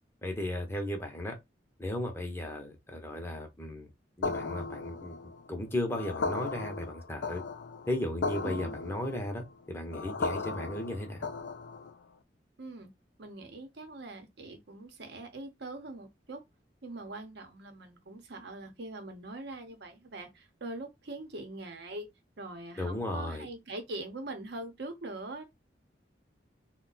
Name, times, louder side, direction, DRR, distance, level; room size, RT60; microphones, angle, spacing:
voice 1, 0.2-1.4 1.8-3.9 4.2-7.4 7.9-11.3 22.8-23.5, left 1 dB, 15° left, 0.7 m, -35 dB
sound 1, 4.2-12.0, left 3 dB, 75° left, 0.5 m, -36 dB
voice 2, 8.4-8.8 12.6-12.9 13.2-16.4 16.8-22.1 22.4-25.4, right 2 dB, 65° right, 0.8 m, -42 dB
2.6 x 2.2 x 3.9 m
head